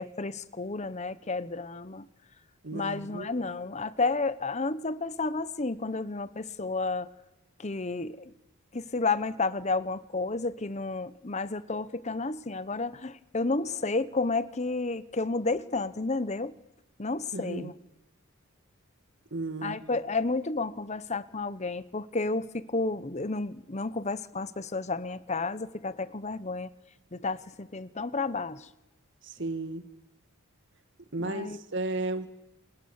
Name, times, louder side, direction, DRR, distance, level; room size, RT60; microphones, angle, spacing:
voice 1, 0.0-2.1 2.7-7.1 7.6-8.3 8.7-16.5 17.0-17.7 19.6-26.7 27.1-28.7 31.2-31.6, left 3 dB, 30° left, 0.9 m, -31 dB
voice 2, 2.6-3.3 17.3-17.7 19.3-19.8 29.2-29.8 31.1-32.3, right 2 dB, 55° right, 1.9 m, -34 dB
28.5 x 27.0 x 7.2 m
head